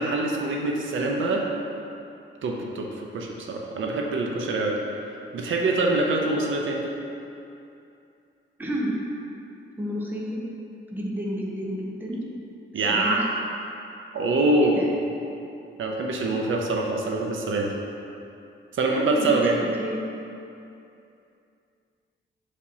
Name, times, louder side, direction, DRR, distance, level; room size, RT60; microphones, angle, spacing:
voice 1, 0.0-1.4 2.4-4.8 5.3-6.8 12.7-13.4 14.1-14.8 15.8-17.7 18.7-19.6, right 2 dB, 75° right, 0 dB, 0.6 m, -24 dB
voice 2, 8.6-8.9 9.8-10.4 10.9-12.2 12.7-13.2 14.6-14.9 15.6-15.7 18.9-20.0, equal, 10° right, -3 dB, 0.6 m, -30 dB
6.7 x 5.0 x 2.8 m, 2.7 s
wide cardioid pair, 165°, 20 cm